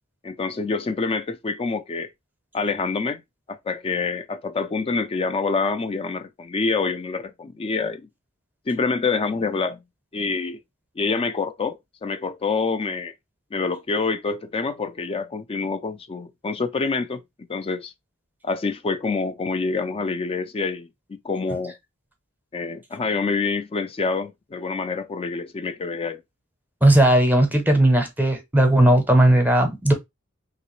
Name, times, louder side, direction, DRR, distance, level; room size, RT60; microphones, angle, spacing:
voice 1, 0.2-2.1 2.5-3.2 3.5-8.1 8.7-9.8 10.1-10.6 11.0-13.1 13.5-17.2 17.5-17.9 18.4-20.9 21.2-21.7 22.5-26.2, left 4 dB, 25° left, 0.4 m, -26 dB
voice 2, 26.8-29.9, right 1 dB, 10° right, 0.7 m, -17 dB
3.2 x 2.9 x 3.1 m
head